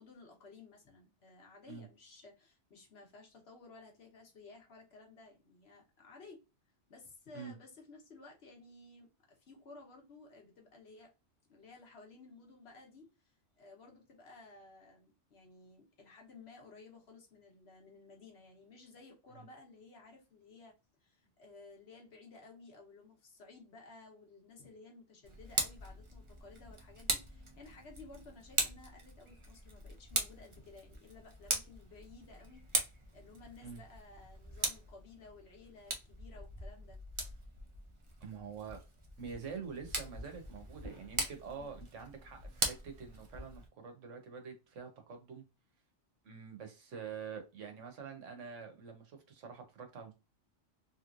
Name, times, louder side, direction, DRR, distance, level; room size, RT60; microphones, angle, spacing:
voice 1, 0.0-6.4 6.9-11.1 11.5-20.8 21.0-37.0 41.5-41.9, left 3 dB, 60° left, 1.3 m, -56 dB
Tick, 25.2-43.7, right 2 dB, 30° right, 0.6 m, -40 dB
voice 2, 38.2-38.8 39.2-45.4 46.2-50.1, right 6 dB, 90° right, 1.3 m, -46 dB
3.2 x 3.0 x 2.5 m
omnidirectional pair, 1.2 m